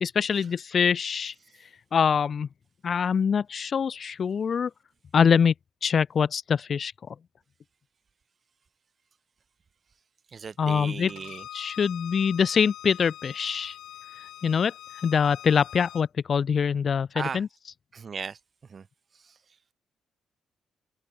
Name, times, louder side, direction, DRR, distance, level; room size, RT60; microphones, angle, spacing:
voice 1, 0.0-1.3 1.9-2.5 2.8-4.7 5.1-5.5 5.8-7.1 10.6-11.1 11.5-13.8 14.2-14.7 15.0-17.5, left 6 dB, 50° left, 1.0 m, -24 dB
voice 2, 10.3-11.4 17.1-17.4 17.9-18.4 18.7-18.8, right 5 dB, 40° right, 0.7 m, -36 dB
Bowed string instrument, 11.1-16.0, left 13 dB, 80° left, 3.4 m, -43 dB
cardioid pair, 90°, 0 cm